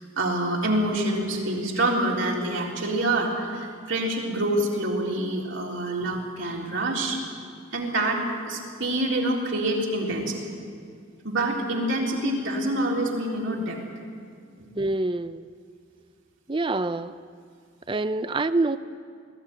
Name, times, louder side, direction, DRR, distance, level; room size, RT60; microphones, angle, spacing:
voice 1, 0.0-7.2 7.7-8.2 8.5-10.4 11.2-13.8 14.6-14.7, right 1 dB, 60° right, -2 dB, 3.9 m, -26 dB
voice 2, 14.8-15.5 16.5-17.1 17.9-18.8, right 2 dB, 25° right, 13 dB, 0.5 m, -26 dB
20.5 x 15.5 x 9.7 m, 2.2 s
head